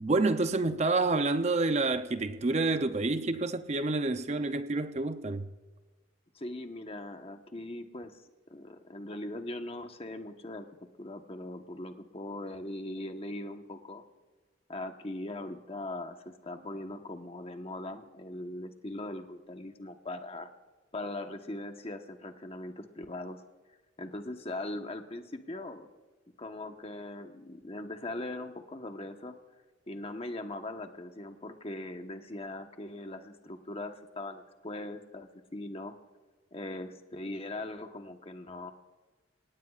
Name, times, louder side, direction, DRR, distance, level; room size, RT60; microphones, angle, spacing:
voice 1, 0.0-5.5, right 3 dB, 35° right, 0.6 m, -28 dB
voice 2, 6.3-8.2 8.5-10.7 11.0-14.0 14.7-20.5 20.9-23.4 24.0-25.9 26.4-29.4 29.9-35.9 36.5-38.7, left 1 dB, 30° left, 1.1 m, -40 dB
27.5 x 18.0 x 2.4 m
head